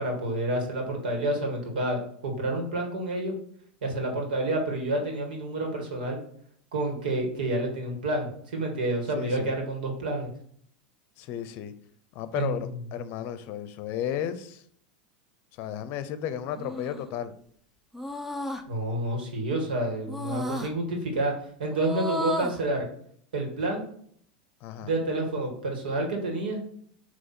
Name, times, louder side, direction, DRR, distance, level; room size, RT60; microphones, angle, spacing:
voice 1, 0.0-3.4 3.8-6.2 6.7-10.3 12.4-12.7 18.7-21.3 21.6-22.9 23.3-23.9 24.8-26.6, right 1 dB, 90° right, 2 dB, 1.9 m, -29 dB
voice 2, 9.1-9.5 11.2-11.7 12.1-14.6 15.6-17.3 24.6-24.9, left 10 dB, 50° left, 12 dB, 0.6 m, -33 dB
sound 1, 16.6-17.1 17.9-18.6 20.1-20.7 21.7-22.6, equal, 5° right, 0.5 m, -33 dB
7.5 x 3.1 x 4.3 m, 0.62 s
supercardioid pair, 130°, 5 cm